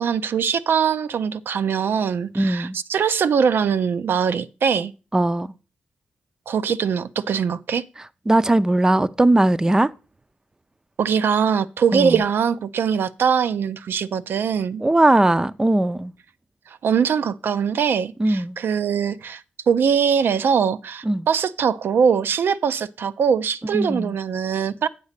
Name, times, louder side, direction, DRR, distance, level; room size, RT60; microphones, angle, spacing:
voice 1, 0.0-4.9 6.5-7.8 11.0-14.8 16.8-24.9, right 7 dB, 75° right, 0.4 m, -22 dB
voice 2, 2.3-2.8 5.1-5.5 8.3-9.9 11.9-12.2 14.8-16.1 18.2-18.6 21.0-21.3 23.7-24.1, right 1 dB, 15° right, 0.4 m, -19 dB
8.4 x 4.0 x 6.5 m
cardioid pair, 70°, 4 cm